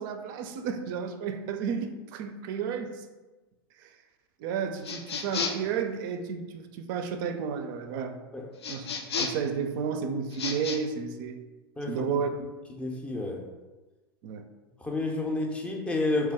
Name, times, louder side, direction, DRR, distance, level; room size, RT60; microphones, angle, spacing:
voice 1, 0.0-3.0 3.8-3.9 4.4-8.2 8.7-11.4 11.9-12.5 14.2-14.4, right 6 dB, 55° right, 8 dB, 0.4 m, -32 dB
sound 1, 4.8-5.7 8.6-9.5 10.3-10.8, left 5 dB, 85° left, 0.4 m, -32 dB
voice 2, 12.8-13.5 14.8-16.3, left 2 dB, 10° left, 1 dB, 0.5 m, -30 dB
3.0 x 2.2 x 3.5 m, 1.2 s
hypercardioid pair, 95°, 13 cm